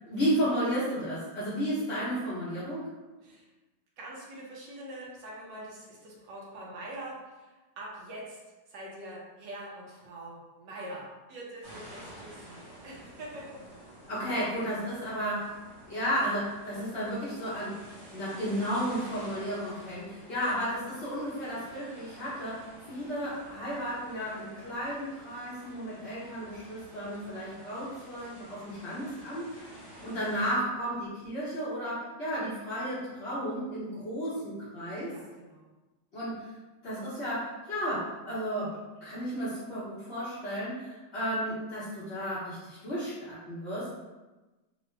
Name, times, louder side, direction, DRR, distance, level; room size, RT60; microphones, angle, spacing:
voice 1, 0.0-2.9 14.1-15.5 15.8-17.8 18.1-29.5 30.0-35.2 36.1-36.5 36.8-38.8 39.0-43.9, equal, 45° left, -11 dB, 1.0 m, -33 dB
voice 2, 4.0-8.4 8.7-13.6 35.1-35.7, right 1 dB, 75° right, -3 dB, 1.4 m, -44 dB
sound 1, 11.6-30.5, right 1 dB, 55° right, 1.7 m, -50 dB
3.8 x 2.1 x 3.1 m, 1.1 s
omnidirectional pair, 2.0 m